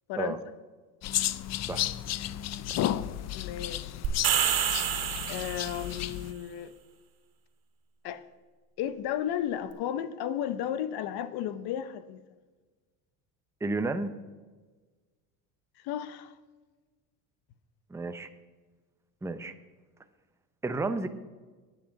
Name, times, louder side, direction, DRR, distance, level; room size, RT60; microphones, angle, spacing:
sound 1, 1.0-6.3, left 12 dB, 40° left, 0.5 m, -33 dB
voice 1, 3.3-4.1 5.3-6.7 8.0-8.2 8.8-12.2 15.8-16.3, left 10 dB, 60° left, 14 dB, 0.9 m, -33 dB
sound 2, 4.0-6.0, right 9 dB, 55° right, 2.3 m, -28 dB
voice 2, 13.6-14.1 17.9-18.3 19.2-19.5 20.6-21.1, right 3 dB, 5° right, 9 dB, 0.7 m, -31 dB
10.0 x 9.1 x 5.8 m, 1.3 s
supercardioid pair, 100°, 43 cm